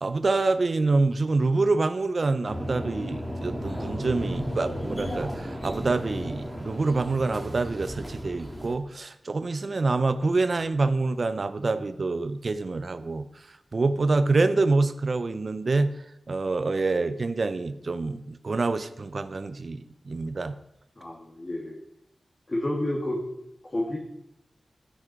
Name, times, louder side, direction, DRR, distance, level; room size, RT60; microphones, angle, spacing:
voice 1, 0.0-20.6, right 3 dB, 50° right, 11 dB, 0.5 m, -26 dB
sound 1, 2.5-8.7, equal, 5° left, 2.1 m, -34 dB
voice 2, 21.0-21.8 22.5-23.2 23.7-24.0, left 1 dB, 30° left, -2 dB, 1.6 m, -29 dB
13.5 x 6.1 x 5.2 m, 0.81 s
wide cardioid pair, 125°, 0 cm